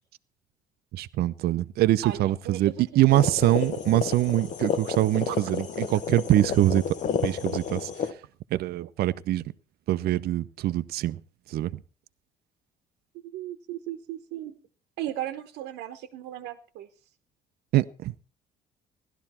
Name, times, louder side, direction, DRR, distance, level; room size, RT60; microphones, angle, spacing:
voice 1, 0.9-7.0 7.2-8.1 8.5-9.4 9.9-11.2 11.5-11.7 17.7-18.1, right 15 dB, 70° right, 0.7 m, -24 dB
voice 2, 2.0-3.2 5.3-5.4 13.2-14.5 15.0-16.9, right 12 dB, 90° right, 1.1 m, -36 dB
sound 1, 3.1-8.1, left 7 dB, 45° left, 1.1 m, -31 dB
16.5 x 12.0 x 4.3 m
cardioid pair, 110°, 17 cm